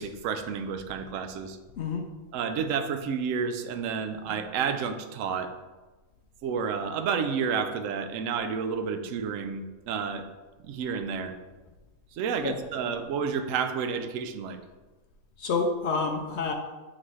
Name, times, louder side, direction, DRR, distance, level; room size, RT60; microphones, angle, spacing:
voice 1, 0.0-1.6 2.3-5.5 6.4-10.2 10.6-11.4 12.1-14.6, right 6 dB, 70° right, 8 dB, 0.9 m, -30 dB
voice 2, 1.8-2.1 12.4-12.6 15.4-16.5, left 4 dB, 65° left, 4 dB, 0.7 m, -28 dB
7.5 x 4.1 x 3.1 m, 1.2 s
omnidirectional pair, 1.5 m